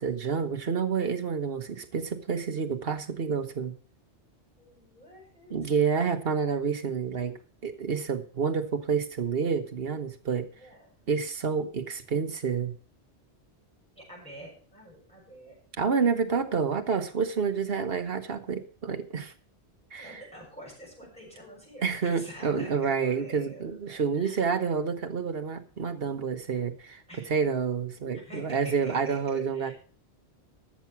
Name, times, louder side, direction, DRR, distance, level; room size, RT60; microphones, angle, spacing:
voice 1, 0.0-3.7 5.5-10.5 11.1-12.7 15.8-19.3 19.9-20.2 21.8-27.0 27.3-29.7, right 6 dB, 60° right, 7 dB, 1.4 m, -29 dB
voice 2, 4.6-5.8 10.5-11.0 13.9-15.6 19.9-24.6 27.1-27.3 28.1-29.7, equal, 5° left, -4 dB, 6.7 m, -47 dB
13.5 x 7.3 x 5.9 m, 0.40 s
omnidirectional pair, 1.1 m